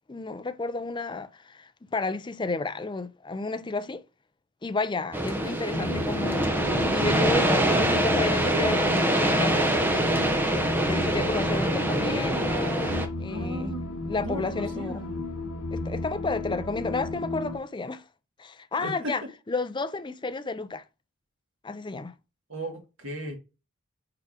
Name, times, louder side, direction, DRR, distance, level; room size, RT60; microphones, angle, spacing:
voice 1, 0.1-4.0 4.6-6.5 6.8-10.2 10.8-13.7 14.1-15.1 15.7-18.0 18.4-20.8 21.6-22.1, left 3 dB, 20° left, 0.4 m, -32 dB
sound 1, 5.1-13.1, right 1 dB, 10° right, 0.7 m, -25 dB
sound 2, 5.7-17.6, left 2 dB, 65° left, 1.0 m, -33 dB
voice 2, 13.3-13.8 14.2-15.2 18.8-18.9 22.5-23.3, right 1 dB, 65° right, 2.1 m, -36 dB
4.8 x 4.8 x 4.9 m
head